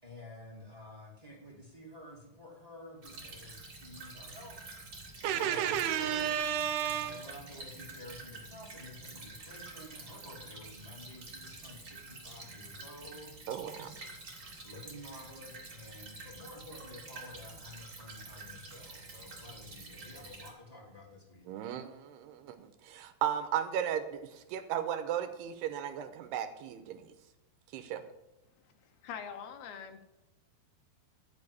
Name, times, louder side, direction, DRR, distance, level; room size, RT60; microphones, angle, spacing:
voice 1, 0.0-4.6 5.2-6.2 6.8-13.4 14.6-21.5, left 1 dB, 10° right, -3 dB, 1.9 m, -51 dB
Stream / Trickle dribble, 3.0-20.5, right 2 dB, 30° right, 2.0 m, -48 dB
voice 2, 5.2-7.3 13.5-14.0 21.5-27.1 27.7-28.0, right 9 dB, 85° right, 9 dB, 3.0 m, -34 dB
voice 3, 29.0-30.0, left 7 dB, 80° left, 6 dB, 3.0 m, -43 dB
13.0 x 5.8 x 8.4 m, 0.99 s
omnidirectional pair, 4.7 m